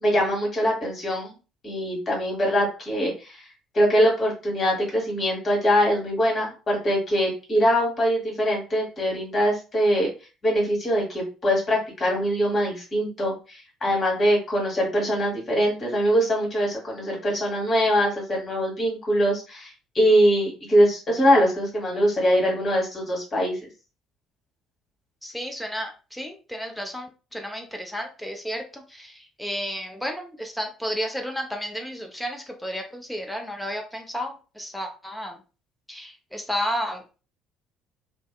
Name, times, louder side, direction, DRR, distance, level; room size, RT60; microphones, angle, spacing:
voice 1, 0.0-1.3 1.6-3.4 3.7-10.1 10.4-23.6, equal, 35° left, -1 dB, 1.3 m, -23 dB
voice 2, 25.2-35.4 35.9-37.0, equal, 5° left, 2 dB, 0.5 m, -32 dB
2.7 x 2.1 x 2.2 m, 0.33 s
figure-of-eight pair, 50°, 0 cm